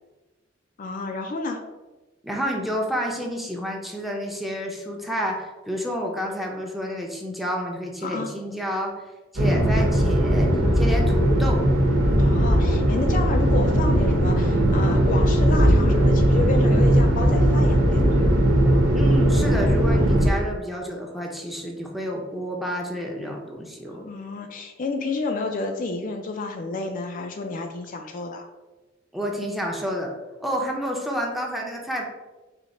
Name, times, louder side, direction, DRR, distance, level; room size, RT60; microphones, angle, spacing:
voice 1, 0.8-1.6 8.0-8.3 12.2-18.3 24.0-28.5, left 3 dB, 45° left, 4 dB, 0.4 m, -30 dB
voice 2, 2.2-8.9 9.3-11.6 18.9-24.1 29.1-30.1 30.4-32.0, equal, ahead, 0 dB, 0.6 m, -29 dB
sound 1, 9.4-20.3, equal, 85° right, 1.0 m, -19 dB
4.4 x 2.8 x 4.1 m, 1.2 s
head